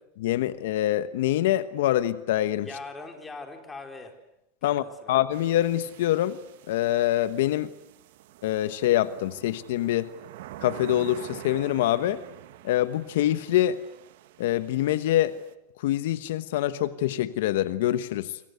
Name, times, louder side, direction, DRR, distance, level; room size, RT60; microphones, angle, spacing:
voice 1, 0.2-2.7 4.6-6.4 6.7-7.7 8.4-10.1 10.6-12.2 12.6-13.8 14.4-15.4 15.8-18.4, left 13 dB, 75° left, 13 dB, 1.1 m, -25 dB
voice 2, 2.6-4.1 4.6-5.1, left 3 dB, 15° left, 5 dB, 4.3 m, -41 dB
sound 1, 5.3-15.5, right 14 dB, 75° right, 1.6 m, -46 dB
27.5 x 25.5 x 8.1 m, 0.82 s
supercardioid pair, 145°, 0 cm